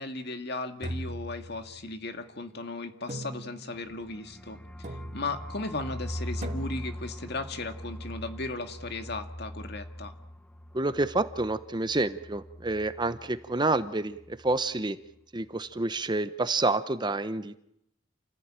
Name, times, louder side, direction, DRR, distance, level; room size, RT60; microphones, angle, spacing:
voice 1, 0.0-10.1, left 2 dB, 55° left, 7 dB, 2.1 m, -36 dB
sound 1, 0.8-2.0 3.1-3.9 4.8-5.5 6.4-7.1, right 1 dB, 40° right, 2.6 m, -40 dB
sound 2, 3.9-13.5 13.7-13.9 14.1-14.6, equal, 5° left, 0.9 m, -41 dB
voice 2, 10.7-15.0 15.3-17.6, right 2 dB, 25° right, 12 dB, 0.8 m, -28 dB
29.0 x 15.5 x 9.0 m, 0.77 s
head